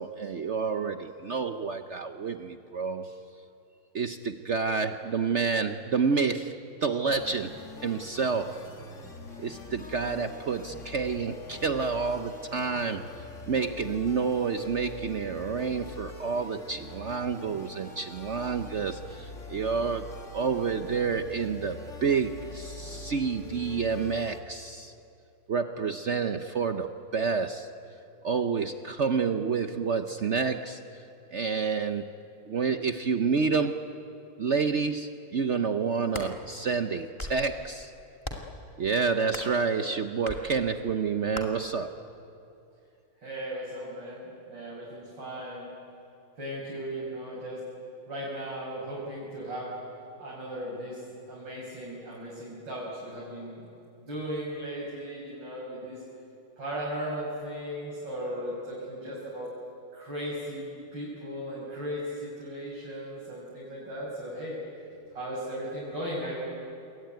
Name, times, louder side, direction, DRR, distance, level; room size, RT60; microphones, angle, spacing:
voice 1, 0.0-3.1 3.9-7.6 7.8-8.7 9.4-13.1 13.5-20.1 20.3-24.9 25.5-27.7 28.2-30.8 31.3-32.1 32.5-33.9 34.4-37.9 38.8-42.0, right 5 dB, 70° right, 8 dB, 0.6 m, -29 dB
sound 1, 7.1-24.4, left 2 dB, 35° left, 2.2 m, -44 dB
sound 2, 35.9-36.3 37.0-37.5 38.2-38.6 39.3-39.6 40.2-40.4 41.3-41.5, left 1 dB, 15° left, 2.3 m, -37 dB
voice 2, 43.2-45.7 46.4-47.6 48.1-49.7 50.2-51.0 51.3-53.6 54.1-56.0 56.6-59.5 59.9-64.6 65.1-66.5, equal, 55° right, -6 dB, 6.7 m, -36 dB
27.5 x 22.5 x 9.4 m, 2.7 s
omnidirectional pair, 2.3 m